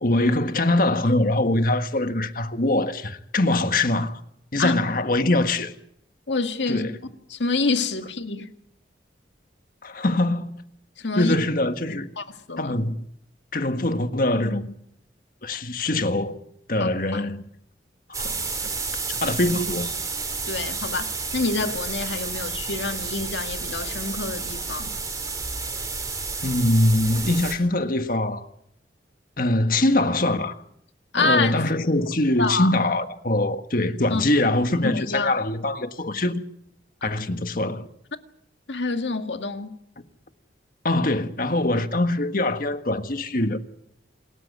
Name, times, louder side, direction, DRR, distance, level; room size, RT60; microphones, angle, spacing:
voice 1, 0.0-4.2 4.5-5.7 6.7-7.0 9.8-10.6 11.2-12.1 12.6-13.1 13.5-14.8 15.4-16.4 16.7-17.4 18.1-18.7 19.1-19.9 26.4-28.5 29.4-30.6 31.2-36.4 37.0-37.9 40.8-43.6, left 2 dB, 50° left, 1.6 m, -23 dB
voice 2, 6.3-6.9 7.3-8.5 11.0-11.4 11.9-12.8 16.8-17.2 20.5-24.9 31.1-31.7 32.4-32.8 34.1-34.2 34.8-35.3 38.7-39.8, left 3 dB, 85° left, 1.9 m, -27 dB
sound 1, 18.1-27.5, right 4 dB, 20° right, 4.1 m, -31 dB
27.0 x 13.5 x 9.4 m
head